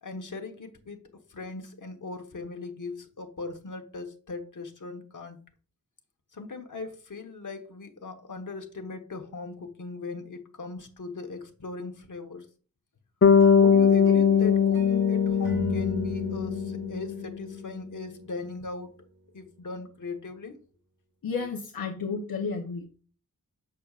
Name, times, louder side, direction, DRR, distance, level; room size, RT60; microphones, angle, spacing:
voice 1, 0.0-5.4 6.3-12.5 13.5-18.9 19.3-20.6, left 4 dB, 60° left, 4 dB, 1.2 m, -39 dB
Bass guitar, 13.2-17.3, left 7 dB, 40° left, 0.6 m, -21 dB
sound 1, 13.4-18.6, right 1 dB, 85° right, 3.7 m, -37 dB
voice 2, 21.2-23.0, left 5 dB, 80° left, 2 dB, 0.9 m, -32 dB
6.7 x 6.4 x 2.4 m, 0.38 s
wide cardioid pair, 90°, 35 cm